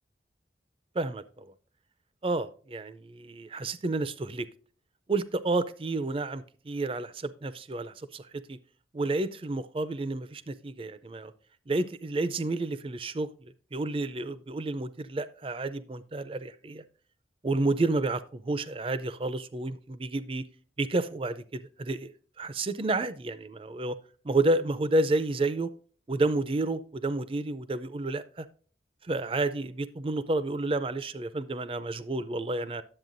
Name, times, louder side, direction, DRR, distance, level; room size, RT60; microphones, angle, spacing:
voice 1, 0.9-1.5 2.2-4.5 5.1-8.6 8.9-11.3 11.7-16.8 17.4-20.4 20.8-22.1 22.4-24.0 24.2-25.7 26.1-28.5 29.0-32.8, right 2 dB, 30° right, 14 dB, 0.4 m, -30 dB
11.0 x 7.8 x 2.6 m, 0.42 s
head